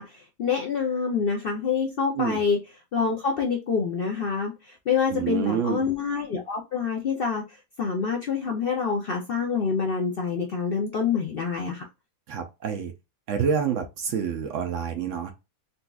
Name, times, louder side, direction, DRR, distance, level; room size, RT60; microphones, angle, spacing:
voice 1, 0.0-2.6 2.9-11.8, left 5 dB, 60° left, 0.6 m, -27 dB
voice 2, 5.1-5.9 12.3-12.9 13.3-15.3, right 7 dB, 65° right, 0.8 m, -27 dB
4.0 x 2.4 x 2.3 m
omnidirectional pair, 1.6 m